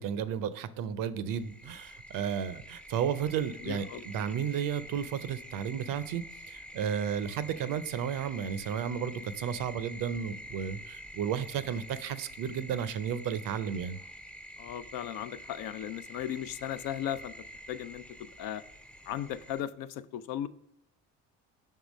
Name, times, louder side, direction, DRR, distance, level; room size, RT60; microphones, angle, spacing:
voice 1, 0.0-14.0, right 8 dB, 60° right, 15 dB, 0.6 m, -33 dB
sound 1, 1.3-19.6, equal, 5° left, 0.4 m, -47 dB
voice 2, 3.6-4.3 14.6-17.3 17.7-18.0 18.4-18.6 19.1-20.5, left 11 dB, 65° left, 12 dB, 0.5 m, -36 dB
5.6 x 3.6 x 5.1 m, 0.79 s
hypercardioid pair, 65°, 38 cm